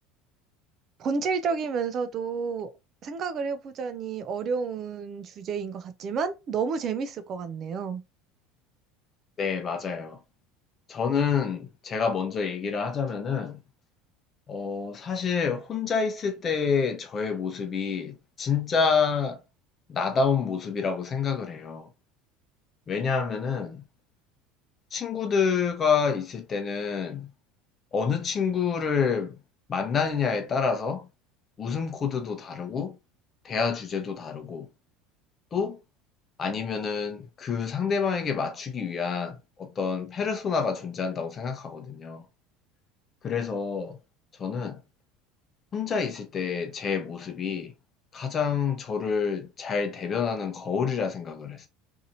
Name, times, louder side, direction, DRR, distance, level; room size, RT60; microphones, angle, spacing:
voice 1, 1.0-2.7 3.0-8.0, right 5 dB, 45° right, 0.4 m, -30 dB
voice 2, 9.4-10.2 10.9-13.6 14.5-19.4 19.9-21.9 22.9-23.8 24.9-27.3 27.9-29.4 29.7-31.1 31.6-33.0 33.4-34.7 35.5-35.8 36.4-42.2 43.2-44.0 44.4-44.8 45.7-47.7 48.1-51.7, left 6 dB, 35° left, 0.7 m, -28 dB
2.7 x 2.6 x 2.6 m
hypercardioid pair, 85°, 0 cm